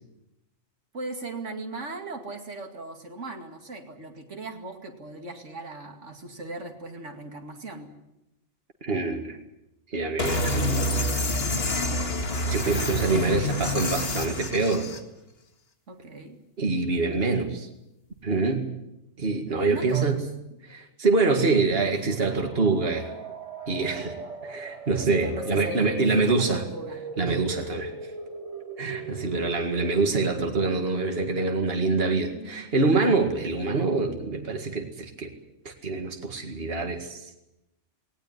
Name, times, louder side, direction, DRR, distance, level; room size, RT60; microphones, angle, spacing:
voice 1, 0.9-7.9 15.9-16.4 19.7-20.3 25.0-27.0 27.4-27.7, right 2 dB, 75° right, 4 dB, 2.6 m, -38 dB
voice 2, 8.8-9.4 9.9-10.9 12.5-14.9 16.6-17.7 18.2-18.7 19.2-20.1 20.6-23.1 23.7-26.6 27.2-27.9 28.8-35.3 35.6-37.3, right 3 dB, 50° right, 4 dB, 2.4 m, -25 dB
sound 1, 10.2-15.0, left 1 dB, 55° left, 2.1 m, -27 dB
sound 2, 22.0-33.7, right 2 dB, 30° right, 2.2 m, -40 dB
19.5 x 19.0 x 9.6 m, 0.89 s
omnidirectional pair, 1.3 m